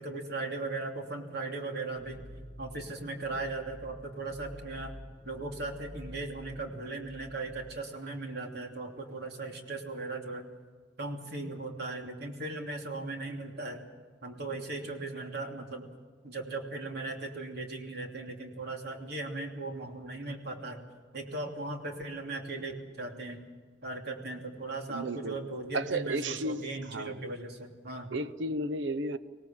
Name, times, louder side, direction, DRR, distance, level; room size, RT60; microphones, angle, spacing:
voice 1, 0.0-2.2 2.6-5.0 5.2-10.4 11.0-13.8 14.2-15.9 16.2-20.8 21.1-23.4 23.8-28.1, right 2 dB, 60° right, 2 dB, 3.0 m, -38 dB
sound 1, 2.0-7.8, equal, 20° right, 1.8 m, -49 dB
voice 2, 24.9-25.4 25.7-27.3 28.1-29.2, right 2 dB, 85° right, 11 dB, 0.9 m, -33 dB
25.0 x 18.5 x 7.4 m, 1.5 s
head